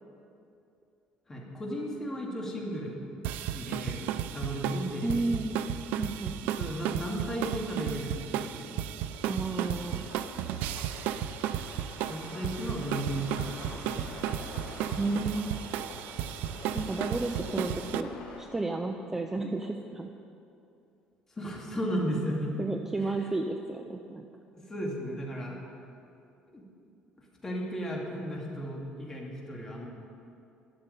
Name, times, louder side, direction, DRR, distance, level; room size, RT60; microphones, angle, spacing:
voice 1, 1.3-3.0 3.5-5.2 6.6-8.8 12.1-14.2 21.4-22.6 23.0-23.1 24.5-25.6 26.5-26.7 27.4-29.9, equal, 15° left, -2 dB, 2.4 m, -35 dB
sound 1, 3.2-18.0, right 11 dB, 90° right, 0.5 m, -34 dB
voice 2, 5.0-5.5 5.9-6.5 9.3-10.1 15.0-15.5 16.7-20.1 22.6-24.3, right 2 dB, 10° right, 4 dB, 0.5 m, -32 dB
sound 2, 8.9-18.4, left 3 dB, 80° left, 2.8 m, -46 dB
12.0 x 6.8 x 9.8 m, 2.6 s
cardioid pair, 145°, 3 cm